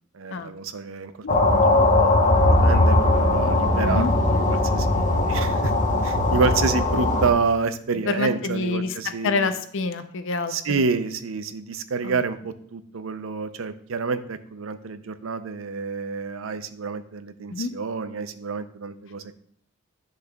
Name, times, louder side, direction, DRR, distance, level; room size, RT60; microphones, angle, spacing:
voice 1, 0.1-5.7 6.0-9.5 10.5-19.3, right 4 dB, 70° right, 11 dB, 0.6 m, -28 dB
sound 1, 1.3-7.3, left 2 dB, 40° left, 1.0 m, -19 dB
voice 2, 8.1-8.9 9.2-10.5 12.0-12.1 17.5-17.7, left 4 dB, 65° left, 9 dB, 0.6 m, -26 dB
9.9 x 6.5 x 2.3 m, 0.63 s
head